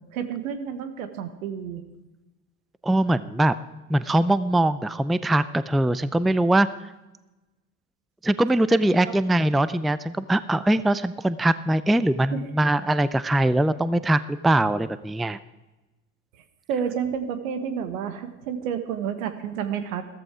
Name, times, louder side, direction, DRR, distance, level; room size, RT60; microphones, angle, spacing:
voice 1, 0.1-1.8 12.3-12.4 16.7-20.0, right 8 dB, 80° right, 9 dB, 1.4 m, -30 dB
voice 2, 2.8-3.5 3.9-6.7 8.2-15.4, right 1 dB, ahead, 16 dB, 0.4 m, -22 dB
14.5 x 14.0 x 4.9 m, 1.1 s
hypercardioid pair, 65°, 41 cm